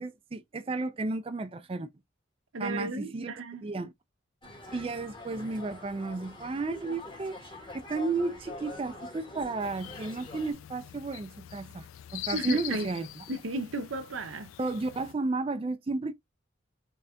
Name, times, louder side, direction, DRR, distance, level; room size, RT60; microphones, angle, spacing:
voice 1, 0.0-1.9 2.6-3.3 3.6-3.9 4.7-7.4 7.7-13.1 14.6-16.1, right 3 dB, 30° right, 0.4 m, -33 dB
voice 2, 2.5-3.6 12.3-12.9 13.3-14.5, right 2 dB, 80° right, 0.8 m, -34 dB
sound 1, 4.4-10.5, left 2 dB, 25° left, 2.0 m, -45 dB
sound 2, 9.6-15.1, left 14 dB, 85° left, 0.3 m, -43 dB
4.0 x 3.3 x 2.4 m
head